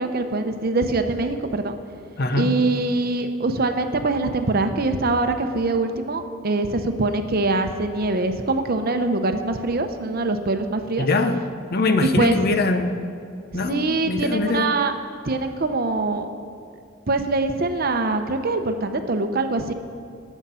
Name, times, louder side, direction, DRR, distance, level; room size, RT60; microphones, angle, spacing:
voice 1, 0.0-1.8 2.3-11.1 12.0-12.4 13.5-14.9 15.2-16.3 17.1-19.7, right 3 dB, 50° right, 7 dB, 0.8 m, -23 dB
voice 2, 2.2-2.5 11.0-11.4 11.7-13.0 13.5-14.7, left 3 dB, 50° left, 8 dB, 0.8 m, -22 dB
19.0 x 7.2 x 5.6 m, 2.3 s
head